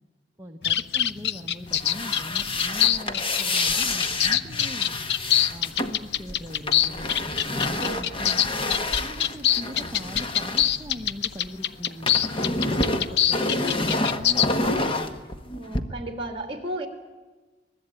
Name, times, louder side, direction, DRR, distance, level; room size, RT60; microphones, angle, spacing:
voice 1, 0.4-5.0 5.5-7.1 7.5-8.4 9.0-12.1 12.6-15.2, equal, 15° right, 1 dB, 1.1 m, -40 dB
sound 1, 0.6-14.5, left 10 dB, 65° left, 0.7 m, -24 dB
sound 2, 1.7-11.5 11.7-15.8, left 2 dB, 30° left, 1.3 m, -28 dB
voice 2, 15.5-16.9, right 1 dB, 30° right, 6 dB, 2.9 m, -33 dB
25.5 x 20.5 x 9.1 m, 1.2 s
head